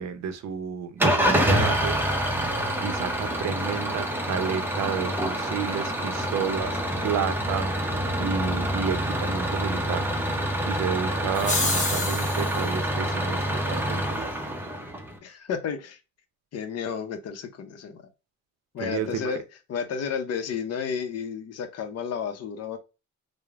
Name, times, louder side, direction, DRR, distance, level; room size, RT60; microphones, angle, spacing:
voice 1, 0.0-2.0 2.8-7.7 8.2-10.1 10.6-14.2 18.8-19.4, right 7 dB, 65° right, 0.6 m, -31 dB
Engine starting / Idling, 1.0-15.2, equal, 5° right, 0.6 m, -27 dB
sound 1, 11.3-12.7, left 3 dB, 25° left, 0.9 m, -28 dB
voice 2, 15.2-16.0 16.5-18.0 18.7-19.4 19.7-22.8, left 7 dB, 55° left, 0.6 m, -32 dB
2.9 x 2.0 x 2.3 m
cardioid pair, 90°, 30 cm